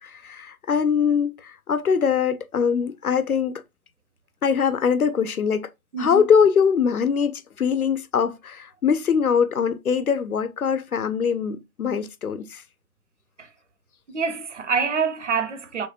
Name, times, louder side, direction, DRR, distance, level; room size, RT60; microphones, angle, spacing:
voice 1, 0.0-3.6 4.4-5.7 6.0-12.6, left 6 dB, 70° left, 0.6 m, -22 dB
voice 2, 5.9-6.3 13.4-13.5 14.1-15.9, right 5 dB, 55° right, 0.5 m, -26 dB
3.5 x 3.2 x 2.7 m
figure-of-eight pair, 135°, 45 cm